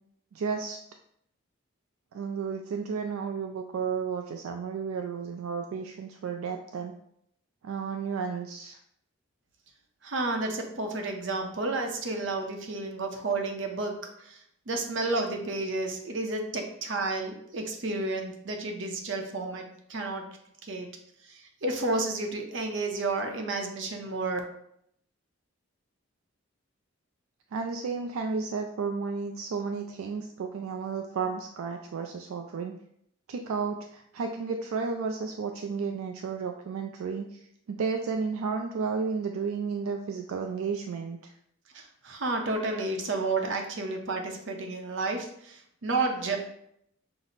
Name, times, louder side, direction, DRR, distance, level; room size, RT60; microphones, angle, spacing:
voice 1, 0.3-0.8 2.1-6.9 7.6-8.8 27.5-32.8 33.3-41.3, right 5 dB, 80° right, 4 dB, 0.3 m, -32 dB
voice 2, 10.0-20.2 20.6-20.9 21.2-24.4 41.7-46.4, right 2 dB, 60° right, 3 dB, 0.7 m, -31 dB
5.9 x 2.0 x 3.9 m, 0.72 s
head